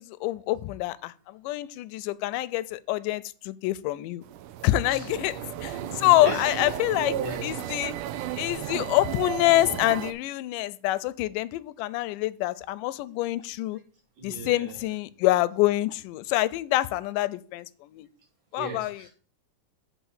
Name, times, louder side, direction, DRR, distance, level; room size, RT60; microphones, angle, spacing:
voice 1, 0.0-4.2 4.6-7.1 7.4-7.9 8.4-13.8 14.2-18.1 18.5-19.1, left 17 dB, 90° left, 2.1 m, -26 dB
sound 1, 4.2-10.1, right 11 dB, 80° right, 2.1 m, -35 dB
voice 2, 4.8-5.2 5.7-6.5 6.9-7.5 14.2-14.8 18.6-19.1, right 5 dB, 60° right, 3.1 m, -35 dB
7.9 x 4.4 x 6.5 m
omnidirectional pair, 3.7 m